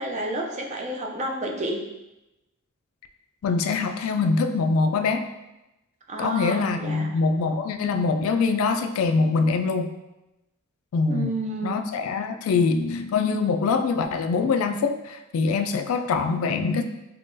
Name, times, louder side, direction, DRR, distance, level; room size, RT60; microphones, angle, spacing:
voice 1, 0.0-1.8 6.1-7.1 11.1-11.8, right 1 dB, 30° right, 1 dB, 0.4 m, -30 dB
voice 2, 3.4-5.3 6.2-9.9 10.9-11.3 11.6-16.8, left 4 dB, 65° left, 7 dB, 0.3 m, -24 dB
3.7 x 2.9 x 2.6 m, 0.95 s
head